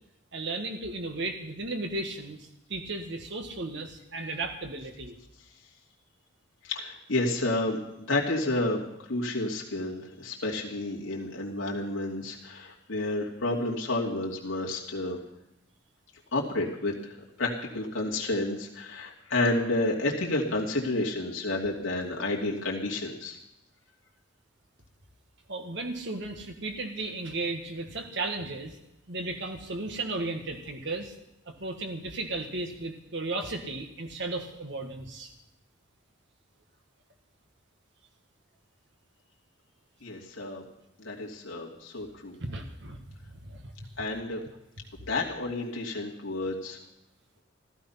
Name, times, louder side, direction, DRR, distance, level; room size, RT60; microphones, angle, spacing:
voice 1, 0.3-5.1 25.5-28.8 29.1-31.1 31.5-35.3 42.4-43.0 43.4-43.7, right 2 dB, 65° right, 4 dB, 1.7 m, -35 dB
voice 2, 6.6-15.2 16.3-23.4 40.0-40.6 41.0-42.4 44.0-44.4 45.1-46.8, left 2 dB, 85° left, -2 dB, 2.7 m, -30 dB
15.5 x 14.0 x 5.8 m, 0.85 s
head